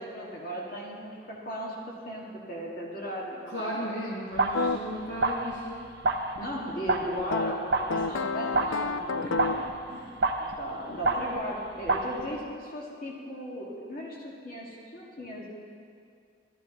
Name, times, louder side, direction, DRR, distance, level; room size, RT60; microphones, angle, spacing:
voice 1, 0.0-1.8 2.0-3.9 4.2-4.4 6.4-9.6 9.9-15.5, equal, 50° left, -4 dB, 1.8 m, -37 dB
voice 2, 3.5-5.8 9.2-9.6 9.9-10.1, equal, 70° left, -5 dB, 1.3 m, -36 dB
sound 1, 4.3-4.8 5.1-11.6 11.8-12.3, right 2 dB, 60° right, 0.6 m, -30 dB
sound 2, 4.5-4.8 7.3-9.7, left 4 dB, 90° left, 0.4 m, -30 dB
13.5 x 11.0 x 3.0 m, 2.3 s
head